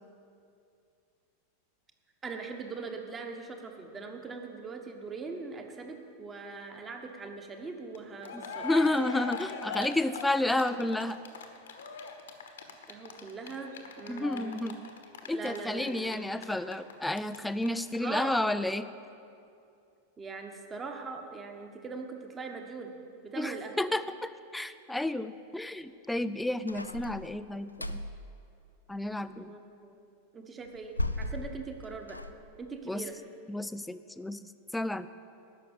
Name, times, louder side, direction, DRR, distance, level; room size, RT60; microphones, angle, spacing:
voice 1, 2.2-8.7 12.9-14.6 15.3-16.2 18.0-18.3 20.2-22.9 23.2-23.7 29.4-30.0 30.3-32.2 32.6-33.2, right 4 dB, 20° right, 4 dB, 1.3 m, -41 dB
Cheering, 7.9-8.0 8.2-17.4 17.6-17.7 17.9-18.0, left 4 dB, 65° left, 1.2 m, -41 dB
voice 2, 8.3-11.2 14.1-14.9 15.2-18.9 23.4-28.0 28.9-29.6 32.9-33.0 33.5-35.1, left 1 dB, 5° left, 13 dB, 0.4 m, -31 dB
sound 1, 26.7-28.2 30.7-32.3, left 1 dB, 85° left, 0.4 m, -36 dB
12.0 x 6.2 x 8.8 m, 2.5 s
figure-of-eight pair, 90°, 0 cm